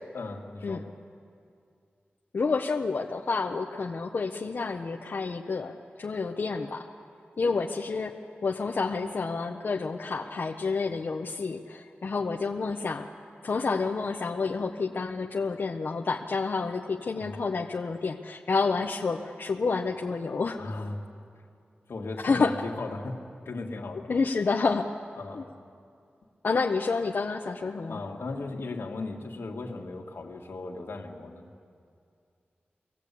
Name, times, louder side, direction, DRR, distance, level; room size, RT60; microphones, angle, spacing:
voice 1, 0.1-0.9 17.1-17.4 20.6-21.0 21.9-24.1 25.2-25.5 27.9-31.5, left 3 dB, 85° left, 1 dB, 2.1 m, -37 dB
voice 2, 2.3-6.9 7.4-8.1 8.4-13.1 13.4-20.6 22.2-22.5 24.1-24.9 25.3-25.4 26.4-28.0, left 4 dB, 60° left, 2 dB, 0.8 m, -29 dB
23.5 x 17.5 x 8.4 m, 2.4 s
wide cardioid pair, 125°, 4 cm